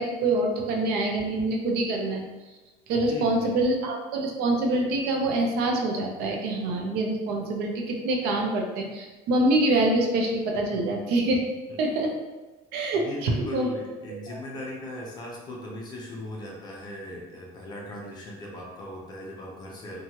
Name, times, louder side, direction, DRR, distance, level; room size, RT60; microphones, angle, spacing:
voice 1, 0.0-2.2 2.9-11.4 11.8-12.1 12.7-13.7, right 2 dB, 75° right, 1 dB, 0.6 m, -25 dB
voice 2, 3.0-3.5 10.7-10.8 11.7-11.8 12.9-20.0, left 1 dB, 25° left, -2 dB, 0.5 m, -38 dB
3.0 x 2.3 x 2.8 m, 1.2 s
cardioid pair, 180°, 17 cm